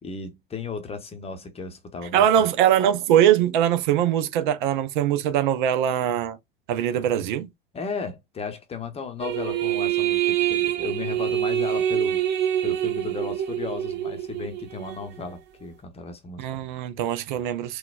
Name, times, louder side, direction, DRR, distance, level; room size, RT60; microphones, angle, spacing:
voice 1, 0.0-2.5 7.7-12.2 12.6-16.5, left 5 dB, 20° left, 0.8 m, -35 dB
voice 2, 2.1-6.4 6.7-7.5 16.4-17.8, right 10 dB, 55° right, 0.6 m, -22 dB
sound 1, 9.2-15.1, right 11 dB, 35° right, 1.1 m, -25 dB
3.8 x 2.3 x 2.3 m
figure-of-eight pair, 75°, 29 cm